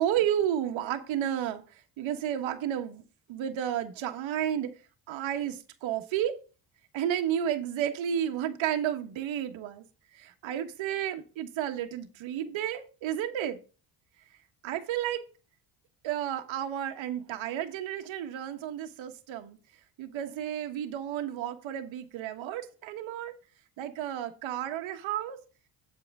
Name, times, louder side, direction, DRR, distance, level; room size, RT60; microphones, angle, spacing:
voice 1, 0.0-3.0 3.3-4.7 5.1-6.4 6.9-9.8 10.1-13.6 14.6-15.2 16.0-19.6 20.0-23.3 23.8-25.4, right 10 dB, 70° right, 1.4 m, -32 dB
8.8 x 7.9 x 3.6 m
hypercardioid pair, 60°, 48 cm